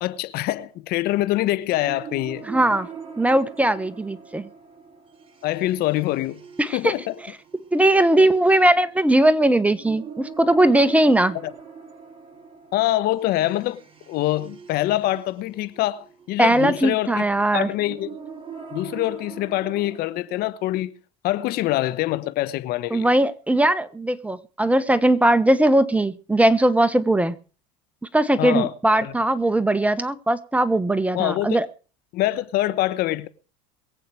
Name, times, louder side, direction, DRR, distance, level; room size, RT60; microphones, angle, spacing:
voice 1, 0.0-2.4 5.4-6.4 6.7-7.1 11.4-11.5 12.7-17.2 17.5-18.2 18.7-20.9 21.2-23.1 28.4-28.7 29.0-29.1 31.1-31.6 32.1-33.3, left 15 dB, 60° left, 1.2 m, -25 dB
sound 1, 1.8-20.0, right 6 dB, 30° right, 4.9 m, -43 dB
voice 2, 2.5-2.9 3.2-4.5 6.6-6.9 7.7-11.4 16.4-17.7 22.9-27.4 28.1-31.7, right 1 dB, 5° right, 1.2 m, -19 dB
23.0 x 8.5 x 4.8 m
supercardioid pair, 95°, 18 cm